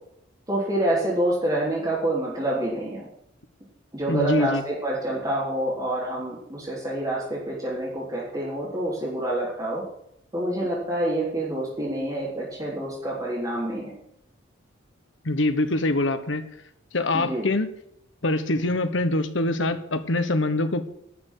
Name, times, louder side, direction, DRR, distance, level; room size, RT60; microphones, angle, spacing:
voice 1, 0.5-3.1 3.9-9.8 10.3-13.9 17.1-17.5, right 1 dB, 20° right, -8 dB, 3.7 m, -27 dB
voice 2, 4.1-4.6 15.2-16.4 16.9-17.7 18.2-20.8, left 2 dB, 65° left, 10 dB, 1.2 m, -24 dB
11.5 x 6.8 x 9.3 m, 0.76 s
head